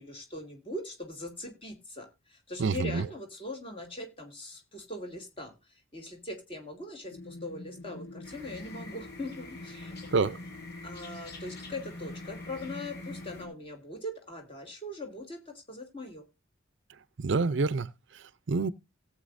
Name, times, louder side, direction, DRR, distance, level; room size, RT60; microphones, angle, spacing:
voice 1, 0.0-10.3 10.8-16.3, left 1 dB, 25° left, 2.6 m, -41 dB
voice 2, 2.6-3.1 10.1-10.3 17.2-18.7, right 4 dB, 60° right, 0.5 m, -28 dB
sound 1, 7.1-13.5, left 2 dB, 75° left, 1.5 m, -45 dB
sound 2, 8.2-13.5, left 2 dB, 50° left, 2.7 m, -49 dB
17.5 x 7.9 x 2.6 m
head